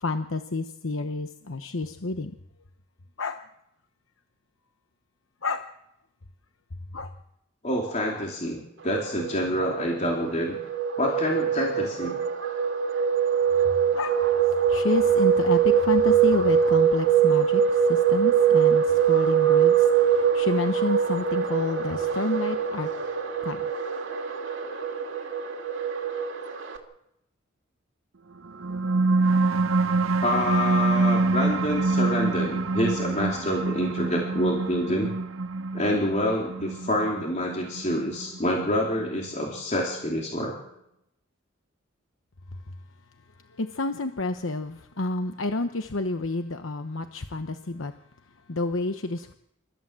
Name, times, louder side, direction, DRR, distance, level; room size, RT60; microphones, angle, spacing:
voice 1, 0.0-2.3 3.2-3.4 5.4-5.7 6.9-7.1 13.9-14.2 14.7-22.9 23.4-23.7 43.6-47.9 48.5-49.3, left 2 dB, 75° left, 8 dB, 1.0 m, -29 dB
voice 2, 7.6-10.6 11.0-12.2 30.2-35.1 35.7-40.6, left 1 dB, 35° left, -1 dB, 3.5 m, -27 dB
sound 1, 9.0-26.8, right 7 dB, 65° right, 2.9 m, -23 dB
sound 2, 28.5-39.4, right 3 dB, 85° right, 0.9 m, -26 dB
28.5 x 14.0 x 7.6 m, 0.82 s
head